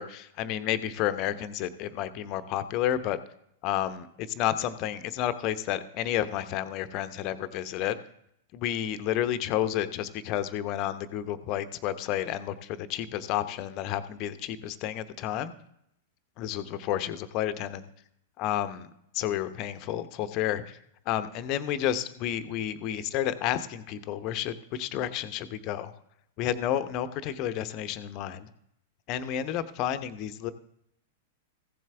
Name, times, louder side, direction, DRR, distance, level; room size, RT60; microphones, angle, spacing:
voice 1, 0.0-3.2 3.6-8.0 8.5-15.5 16.4-17.9 18.4-20.8 21.1-25.9 26.4-28.5 29.1-30.5, left 11 dB, 40° left, 12 dB, 0.8 m, -31 dB
15.0 x 7.4 x 3.5 m, 0.75 s
figure-of-eight pair, 95°, 0 cm